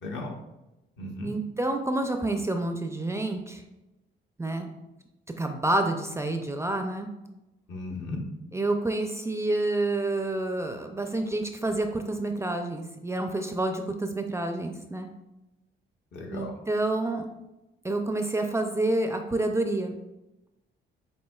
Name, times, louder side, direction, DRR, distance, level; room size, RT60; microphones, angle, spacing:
voice 1, 0.0-0.3 1.0-1.3 7.7-8.2 16.1-16.5, left 2 dB, 65° left, 0 dB, 1.0 m, -35 dB
voice 2, 1.2-3.6 4.4-4.8 5.4-7.1 8.5-15.1 16.3-17.3 17.8-19.9, right 2 dB, 15° right, 5 dB, 0.4 m, -28 dB
7.3 x 2.6 x 2.3 m, 0.97 s
cardioid pair, 90°, 20 cm